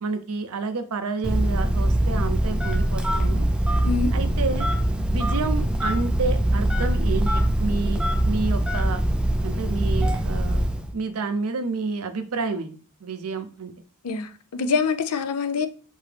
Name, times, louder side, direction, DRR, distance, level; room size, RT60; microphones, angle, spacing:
voice 1, 0.0-3.5 4.1-4.7 5.1-9.0 9.4-10.7 10.9-12.7 13.0-13.7, right 4 dB, 75° right, 0.6 m, -29 dB
Telephone, 1.2-10.9, right 1 dB, 5° right, 0.4 m, -23 dB
voice 2, 14.0-15.7, left 5 dB, 85° left, 0.5 m, -25 dB
5.9 x 2.7 x 3.3 m
head